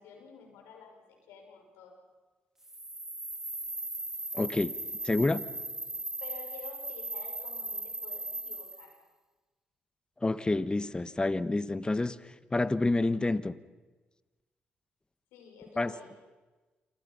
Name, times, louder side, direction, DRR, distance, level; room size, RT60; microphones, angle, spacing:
voice 1, 0.0-1.9 6.2-8.9 15.3-16.1, left 6 dB, 85° left, 2 dB, 6.4 m, -50 dB
sound 1, 2.6-8.9, right 2 dB, 10° right, 0.8 m, -38 dB
voice 2, 4.3-4.7 5.0-5.4 10.2-13.5 15.8-15.9, left 2 dB, 20° left, 14 dB, 1.4 m, -28 dB
28.0 x 26.0 x 5.7 m, 1.2 s
supercardioid pair, 55°, 4 cm